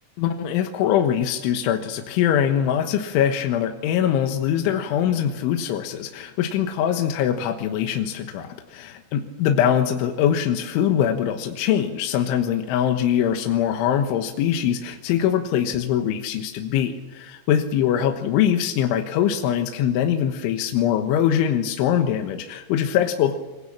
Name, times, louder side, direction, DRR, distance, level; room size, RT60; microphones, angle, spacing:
voice 1, 0.2-23.4, left 9 dB, 75° left, 5 dB, 3.6 m, -22 dB
26.0 x 23.5 x 7.4 m, 1.1 s
omnidirectional pair, 5.8 m